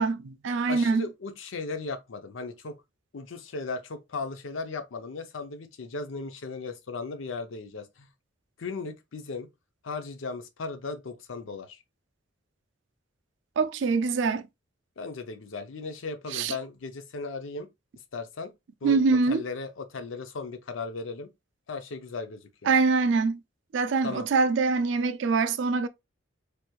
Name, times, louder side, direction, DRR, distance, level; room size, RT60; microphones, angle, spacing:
voice 1, 0.0-1.1 13.6-14.4 16.3-16.5 18.8-19.4 22.7-23.4 23.7-25.9, right 4 dB, 65° right, 0.4 m, -24 dB
voice 2, 0.7-2.8 3.1-8.1 8.6-9.5 9.8-11.8 15.0-17.7 18.1-18.5 18.8-19.0 19.3-21.3 21.7-22.7 24.0-24.2, left 4 dB, 75° left, 0.6 m, -36 dB
3.3 x 3.0 x 2.3 m
head